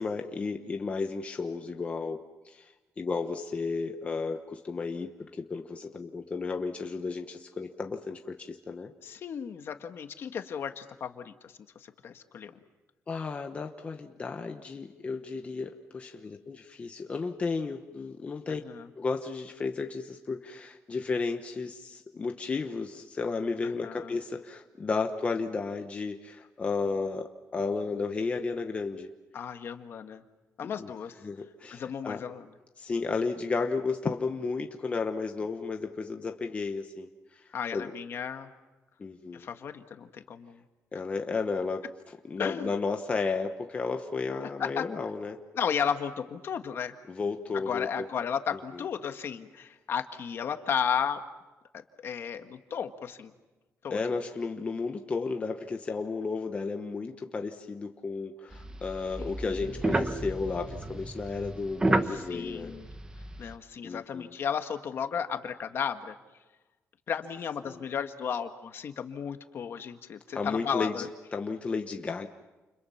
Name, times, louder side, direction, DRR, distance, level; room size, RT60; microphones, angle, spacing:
voice 1, 0.0-8.9 13.1-18.6 19.0-29.1 30.6-30.9 31.2-32.2 32.8-37.9 39.0-39.5 40.9-45.4 47.1-48.1 48.7-48.9 53.9-62.8 63.8-64.4 67.6-67.8 70.3-72.3, left 4 dB, 25° left, 4 dB, 1.1 m, -33 dB
voice 2, 9.0-11.5 11.8-12.5 18.6-18.9 23.8-24.1 29.3-30.2 30.6-31.1 31.7-32.4 37.5-38.5 39.3-40.6 42.4-42.7 44.6-44.8 45.5-46.9 47.7-51.2 52.0-53.3 53.8-54.0 59.2-59.3 62.3-62.9 63.4-66.1 67.1-71.1, left 7 dB, 50° left, 7 dB, 1.6 m, -34 dB
sound 1, 58.5-63.5, right 2 dB, 15° right, 1.1 m, -31 dB
30.0 x 29.5 x 5.8 m, 1.1 s
wide cardioid pair, 180°, 5 cm